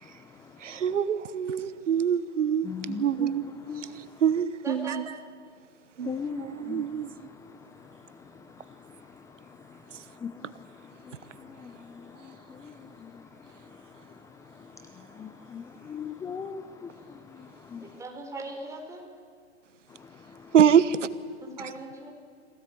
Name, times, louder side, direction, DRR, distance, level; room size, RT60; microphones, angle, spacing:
voice 1, 0.6-3.4 4.2-5.0 6.0-6.1 6.4-7.1 20.5-21.0, right 8 dB, 90° right, 1.1 m, -24 dB
voice 2, 2.6-3.8 6.0-6.9 10.2-10.3 11.6-12.0 13.0-13.1 15.2-16.9 17.7-17.9, left 6 dB, 10° left, 0.6 m, -37 dB
voice 3, 4.6-5.1 17.8-19.0 21.4-22.1, right 2 dB, 10° right, 4.2 m, -40 dB
24.5 x 17.5 x 8.7 m
hypercardioid pair, 130°, 35 cm